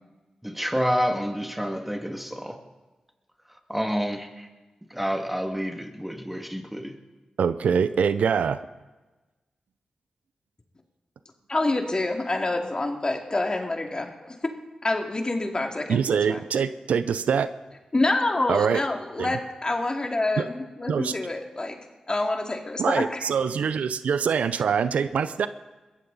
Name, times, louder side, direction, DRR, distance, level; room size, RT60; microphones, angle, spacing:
voice 1, 0.4-2.6 3.7-4.5 4.9-7.0, equal, 5° right, 4 dB, 2.1 m, -28 dB
voice 2, 7.4-8.6 15.9-17.5 18.5-18.8 19.2-19.3 20.4-20.5 20.9-21.1 22.8-25.5, right 7 dB, 85° right, 13 dB, 0.5 m, -24 dB
voice 3, 11.5-14.5 14.8-16.4 17.9-21.8 22.1-23.2, left 2 dB, 35° left, 3 dB, 2.4 m, -27 dB
21.5 x 15.0 x 4.0 m, 1.2 s
cardioid pair, 40°, 2 cm